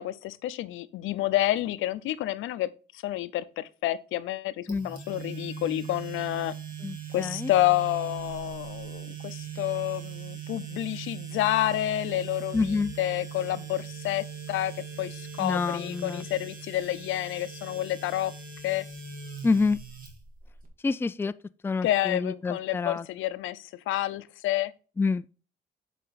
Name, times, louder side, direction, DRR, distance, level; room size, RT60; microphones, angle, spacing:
voice 1, 0.0-2.7 3.0-6.5 7.1-18.3 18.6-18.9 21.8-24.7, left 14 dB, 85° left, 0.6 m, -29 dB
sound 1, 4.7-20.7, right 7 dB, 45° right, 2.2 m, -40 dB
voice 2, 6.8-7.5 12.5-12.9 15.4-16.3 19.4-19.8 20.8-21.3 21.6-23.1 25.0-25.3, left 4 dB, 10° left, 0.3 m, -27 dB
7.6 x 5.0 x 4.1 m
cardioid pair, 90°, 20 cm